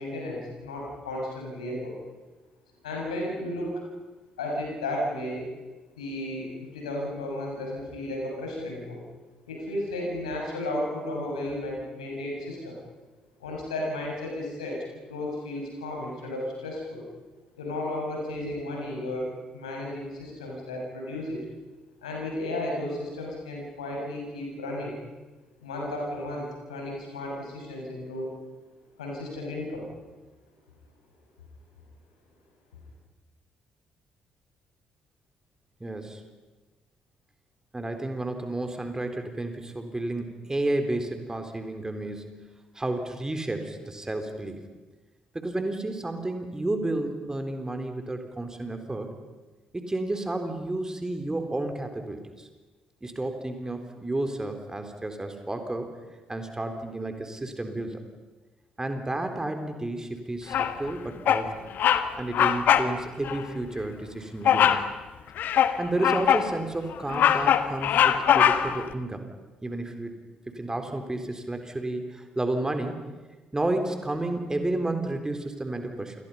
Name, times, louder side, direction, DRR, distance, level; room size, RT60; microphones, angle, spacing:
voice 1, 0.0-1.9 2.8-3.8 4.4-5.5 6.0-9.0 9.5-12.8 13.4-14.8 15.1-17.0 17.6-21.4 22.0-25.0 25.6-28.3 29.0-29.8, left 1 dB, 80° left, -2 dB, 6.9 m, -33 dB
voice 2, 35.8-36.2 37.7-42.4 42.7-44.6 45.3-49.1 49.7-52.5 53.0-55.9 56.3-58.0 58.8-61.5 62.2-64.8 65.8-69.2 69.6-70.2 70.5-73.0 73.5-76.2, right 2 dB, 15° right, 6 dB, 4.0 m, -31 dB
Bird vocalization bird call bird song, 60.5-60.9 61.3-61.5 61.8-62.1 62.3-62.9 63.2-63.4 64.5-64.9 65.4-66.5 66.9-68.8, left 9 dB, 55° left, 1.4 m, -21 dB
28.5 x 28.5 x 5.7 m, 1.2 s
figure-of-eight pair, 45°, 4 cm